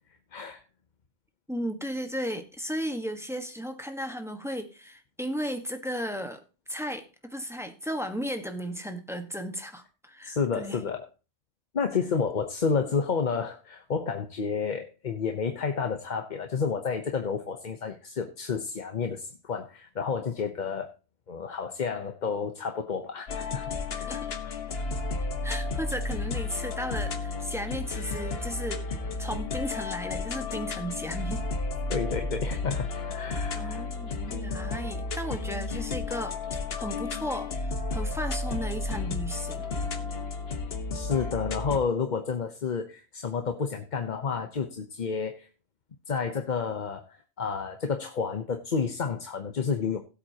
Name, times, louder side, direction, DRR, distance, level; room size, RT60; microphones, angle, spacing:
voice 1, 0.3-0.6 10.2-11.1 11.7-20.9 21.3-23.7 31.9-33.8 40.9-45.5 46.1-50.0, left 5 dB, 45° left, 6 dB, 0.9 m, -30 dB
voice 2, 1.5-6.4 6.7-10.8 24.0-24.4 25.4-28.8 29.2-31.4 33.5-36.4 36.8-39.7, equal, ahead, 6 dB, 1.2 m, -35 dB
sound 1, 23.3-41.8, left 3 dB, 60° left, 1.4 m, -32 dB
17.0 x 7.8 x 2.9 m, 0.33 s
omnidirectional pair, 1.2 m